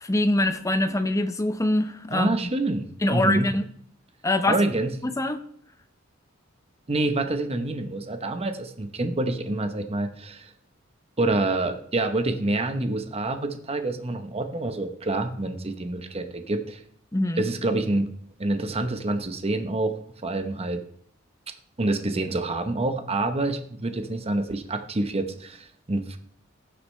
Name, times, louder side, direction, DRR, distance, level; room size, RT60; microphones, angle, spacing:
voice 1, 0.0-2.4 3.0-3.6 4.2-4.6 5.0-5.4 17.1-17.4, left 1 dB, 15° left, 9 dB, 0.7 m, -24 dB
voice 2, 2.1-3.5 4.5-4.9 6.9-10.5 11.2-16.8 17.4-18.1 18.4-20.8 21.8-26.2, right 2 dB, 30° right, 8 dB, 0.8 m, -27 dB
17.5 x 6.7 x 3.2 m, 0.63 s
head